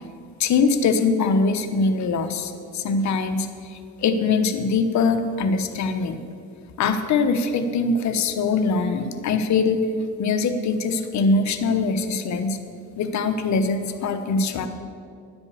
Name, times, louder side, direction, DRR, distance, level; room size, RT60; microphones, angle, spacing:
voice 1, 0.4-6.2 6.8-9.8 10.2-12.6 13.0-14.7, left 4 dB, 65° left, 8 dB, 0.9 m, -22 dB
11.0 x 5.3 x 8.3 m, 2.4 s
cardioid pair, 90°, 30 cm